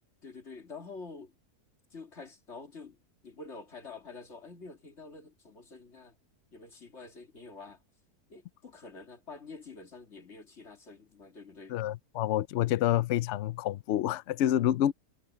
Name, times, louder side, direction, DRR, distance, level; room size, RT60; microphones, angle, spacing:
voice 1, 0.2-1.3 1.9-3.0 3.2-6.2 6.5-7.8 8.3-11.8, left 4 dB, 45° left, 2.8 m, -47 dB
voice 2, 11.7-14.9, left 12 dB, 80° left, 0.6 m, -28 dB
omnidirectional pair, 1.7 m